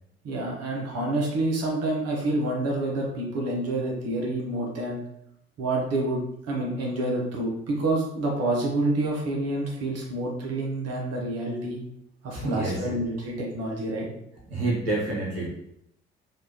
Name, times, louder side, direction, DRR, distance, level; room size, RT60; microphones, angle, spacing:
voice 1, 0.2-5.0 5.6-6.2 6.5-11.8 12.2-14.1, right 2 dB, 55° right, -2 dB, 1.1 m, -28 dB
voice 2, 12.3-12.8 14.5-15.5, right 2 dB, 90° right, -7 dB, 0.9 m, -27 dB
3.3 x 2.5 x 3.0 m, 0.77 s
hypercardioid pair, 45°, 30 cm